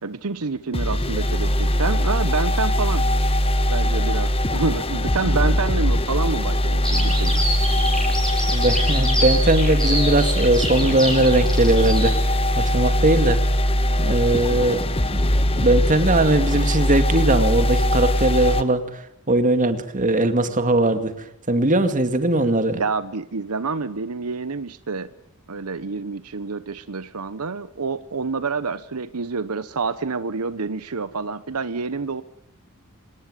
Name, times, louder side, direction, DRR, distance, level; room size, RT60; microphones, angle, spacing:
voice 1, 0.0-3.1 3.7-7.5 22.4-25.1 25.5-32.2, right 4 dB, 85° right, 1.0 m, -28 dB
sound 1, 0.7-18.6, left 1 dB, 25° left, 1.4 m, -21 dB
Bird vocalization bird call bird song, 6.8-12.1, equal, 5° left, 7.0 m, -27 dB
voice 2, 8.5-13.4 14.0-15.3 15.6-19.0 19.3-21.1 21.5-22.8, right 2 dB, 35° right, 2.4 m, -20 dB
25.5 x 20.0 x 9.1 m
head